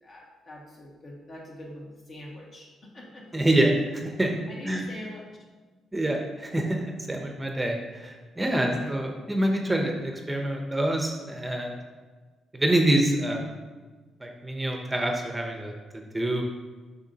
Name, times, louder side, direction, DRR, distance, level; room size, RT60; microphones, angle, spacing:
voice 1, 0.0-3.3 4.5-5.2 8.6-9.0, equal, 50° left, -3 dB, 1.7 m, -43 dB
voice 2, 3.3-4.4 4.6-4.9 5.9-11.8 12.5-13.5 14.2-16.4, right 1 dB, 15° right, 2 dB, 0.8 m, -26 dB
6.9 x 5.7 x 2.8 m, 1.3 s
cardioid pair, 90°, 0 cm